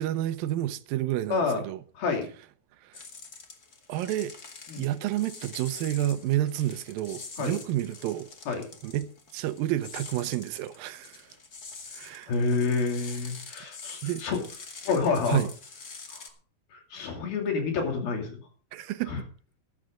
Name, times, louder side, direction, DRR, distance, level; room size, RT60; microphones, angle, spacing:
voice 1, 0.0-1.8 2.8-3.0 3.9-4.3 4.8-8.3 8.8-11.3 11.9-12.3 14.0-14.2 15.3-15.5 18.7-19.3, right 13 dB, 80° right, 2.5 m, -30 dB
voice 2, 1.3-1.6 2.0-2.3 4.7-4.9 7.4-7.6 8.5-8.7 12.3-14.4 14.9-15.4 16.1-16.2 16.7-18.4 19.1-19.2, left 4 dB, 80° left, 4.6 m, -28 dB
sound 1, 2.9-16.3, left 4 dB, 40° left, 1.4 m, -45 dB
14.0 x 12.0 x 3.8 m
omnidirectional pair, 4.2 m